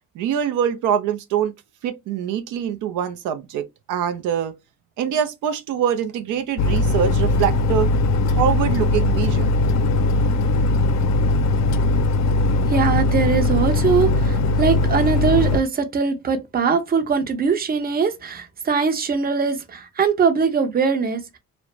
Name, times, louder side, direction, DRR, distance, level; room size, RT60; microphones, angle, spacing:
voice 1, 0.2-1.5 1.8-4.5 5.0-7.9 8.3-9.5, right 9 dB, 85° right, 0.5 m, -24 dB
sound 1, 6.6-15.6, left 2 dB, 65° left, 0.4 m, -19 dB
voice 2, 12.7-21.4, right 5 dB, 30° right, 0.6 m, -21 dB
2.4 x 2.1 x 2.9 m
cardioid pair, 90°, 30 cm